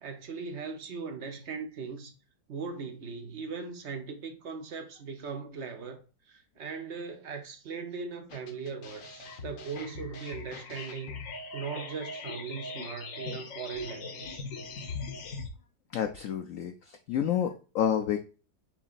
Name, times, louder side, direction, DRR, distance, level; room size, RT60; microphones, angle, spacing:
voice 1, 0.0-2.1 2.5-11.2 11.5-14.6, right 5 dB, 55° right, 0.8 m, -39 dB
sound 1, 8.3-15.5, left 3 dB, 55° left, 1.0 m, -40 dB
voice 2, 15.9-18.2, left 9 dB, 70° left, 0.7 m, -29 dB
7.0 x 2.8 x 2.4 m
omnidirectional pair, 2.0 m